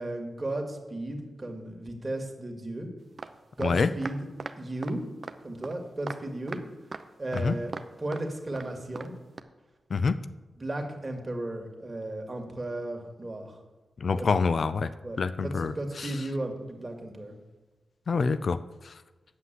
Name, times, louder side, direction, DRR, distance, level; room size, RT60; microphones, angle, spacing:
voice 1, 0.0-2.9 3.6-4.3 4.6-5.0 5.4-6.6 7.2-7.7 8.0-9.1 10.6-13.6 14.1-14.3 15.0-17.4, right 1 dB, 35° right, 3 dB, 2.2 m, -35 dB
sound 1, 3.2-3.3 3.6-3.7 4.0-4.5 4.8-4.9 5.2-5.4 5.6-5.7 6.1-6.2 6.5-6.6 6.9-7.0 7.3-7.9 8.1-8.3 8.5-8.7 8.9-9.1 9.4-9.5, right 4 dB, 50° right, 0.7 m, -38 dB
voice 2, 14.0-14.9 15.2-16.1 18.1-18.6 18.8-18.9, left 4 dB, 65° left, 13 dB, 0.4 m, -26 dB
9.4 x 5.8 x 7.6 m, 1.2 s
supercardioid pair, 45°, 0 cm